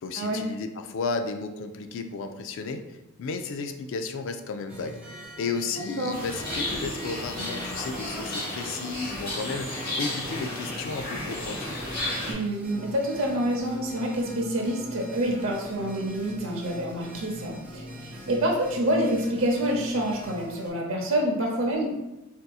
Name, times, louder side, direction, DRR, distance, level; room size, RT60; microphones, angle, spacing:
voice 1, 0.0-5.0 5.4-11.9, left 4 dB, 60° left, 7 dB, 0.3 m, -33 dB
sound 1, 4.7-20.7, equal, 5° right, 0.5 m, -43 dB
voice 2, 5.7-6.2 12.3-22.0, right 1 dB, 65° right, 0 dB, 0.7 m, -27 dB
sound 2, 6.1-12.3, left 1 dB, 45° left, 1.1 m, -33 dB
3.6 x 2.7 x 2.3 m, 0.94 s
head